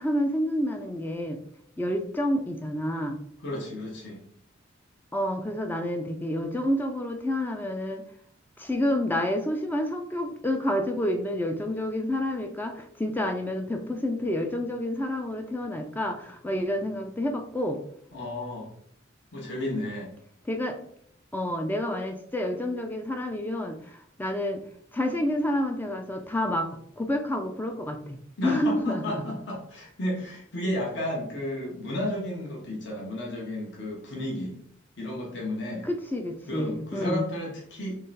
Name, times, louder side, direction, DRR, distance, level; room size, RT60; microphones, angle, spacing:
voice 1, 0.0-1.4 1.8-3.2 5.1-8.0 8.6-17.8 20.5-20.8 21.3-24.6 24.9-28.2 28.4-29.2 35.8-37.2, left 1 dB, 10° left, 5 dB, 0.3 m, -29 dB
voice 2, 3.4-4.2 18.1-18.7 19.3-20.1 28.4-34.6 35.0-35.9 36.5-38.0, left 1 dB, 60° left, -2 dB, 1.1 m, -33 dB
3.8 x 3.2 x 4.1 m, 0.65 s
head